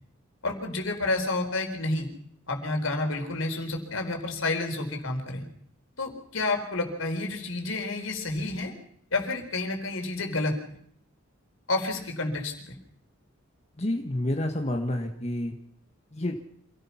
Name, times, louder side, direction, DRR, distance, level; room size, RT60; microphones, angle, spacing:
voice 1, 0.4-2.1 2.5-5.4 6.0-8.7 9.1-10.8 11.7-12.8, left 2 dB, 75° left, 4 dB, 4.5 m, -30 dB
voice 2, 13.8-15.5 16.1-16.4, left 1 dB, 30° left, 3 dB, 1.6 m, -29 dB
27.5 x 17.5 x 5.9 m, 0.67 s
head